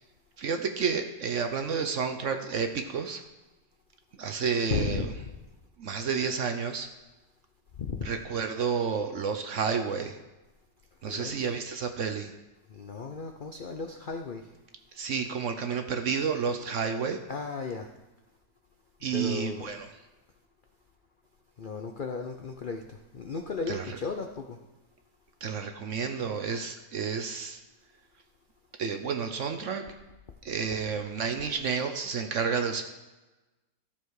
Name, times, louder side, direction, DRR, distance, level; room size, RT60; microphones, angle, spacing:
voice 1, 0.4-3.2 4.2-5.1 5.8-6.9 8.0-10.2 11.0-12.3 14.9-17.2 19.0-19.9 23.7-24.0 25.4-27.6 28.8-29.8 30.4-32.8, right 6 dB, 60° right, 6 dB, 0.9 m, -30 dB
voice 2, 4.7-5.3 7.8-8.1 11.0-11.5 12.7-14.5 17.3-17.9 19.1-19.7 21.6-24.6, left 5 dB, 80° left, 4 dB, 0.4 m, -35 dB
13.5 x 7.1 x 4.8 m, 1.1 s
omnidirectional pair, 1.9 m